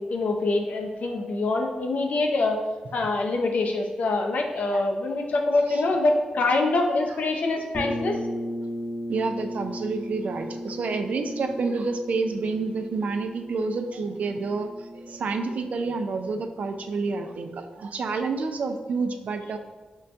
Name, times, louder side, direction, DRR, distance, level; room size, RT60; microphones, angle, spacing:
voice 1, 0.0-2.6 2.9-8.2, left 2 dB, 75° left, 3 dB, 0.5 m, -25 dB
sound 1, 7.7-17.4, equal, ahead, 0.8 m, -36 dB
voice 2, 9.1-19.6, right 4 dB, 70° right, 6 dB, 0.3 m, -29 dB
5.2 x 2.2 x 2.5 m, 1.3 s
cardioid pair, 60°, 3 cm